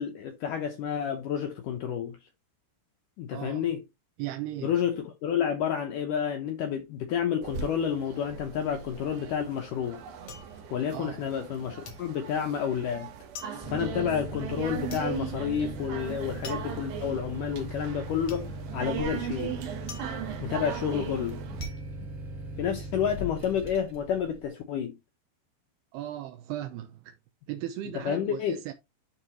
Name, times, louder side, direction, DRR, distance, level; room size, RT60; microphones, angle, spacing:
voice 1, 0.0-2.2 3.2-3.8 4.6-10.0 10.7-13.1 13.7-19.5 20.4-21.4 22.0-22.1 22.6-24.9 28.1-28.6, left 8 dB, 80° left, 1.9 m, -30 dB
voice 2, 3.3-3.7 4.2-4.7 10.9-11.2 25.9-27.1 27.5-28.7, right 13 dB, 80° right, 2.5 m, -37 dB
sound 1, 7.4-21.7, right 8 dB, 65° right, 2.9 m, -39 dB
sound 2, 10.3-11.5 11.8-23.0 23.3-23.9, left 5 dB, 60° left, 1.6 m, -48 dB
sound 3, 13.6-24.5, right 1 dB, 35° right, 1.2 m, -39 dB
11.5 x 4.0 x 2.9 m
omnidirectional pair, 5.0 m